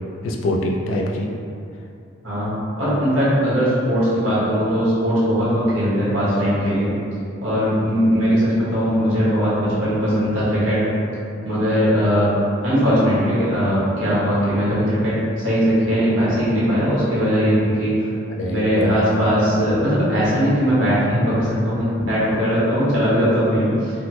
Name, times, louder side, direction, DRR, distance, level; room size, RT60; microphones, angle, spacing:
voice 1, 0.2-1.3 18.3-19.3, left 1 dB, 90° left, 0 dB, 0.4 m, -24 dB
voice 2, 2.2-6.9 7.4-10.8 11.4-12.3 12.6-18.1 18.5-23.9, equal, 80° right, -10 dB, 1.1 m, -19 dB
3.2 x 2.0 x 2.8 m, 2.5 s
head